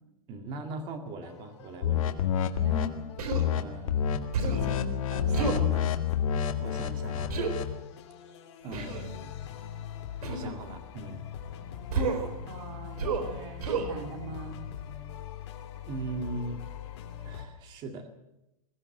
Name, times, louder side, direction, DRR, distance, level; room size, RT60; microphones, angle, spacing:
voice 1, 0.3-2.3 3.5-4.2 6.6-7.4 8.6-9.3 10.3-11.2 15.9-16.6 17.2-18.1, right 3 dB, 25° right, 6 dB, 2.1 m, -39 dB
sound 1, 1.2-17.4, left 9 dB, 50° left, 3.1 m, -43 dB
sound 2, 1.8-2.9 3.3-3.6 3.9-4.2 4.4-7.7, left 9 dB, 65° left, 1.9 m, -28 dB
voice 2, 2.5-2.9 4.5-6.0 12.5-14.6, right 1 dB, 50° right, 4 dB, 3.8 m, -40 dB
Human voice, 3.2-3.5 4.3-4.7 5.3-5.6 7.3-7.5 8.7-9.0 10.2-10.5 11.9-12.3 13.0-13.3 13.6-13.9, right 4 dB, 85° right, 4.1 m, -29 dB
21.5 x 15.5 x 7.8 m, 0.91 s
supercardioid pair, 175°, 19 cm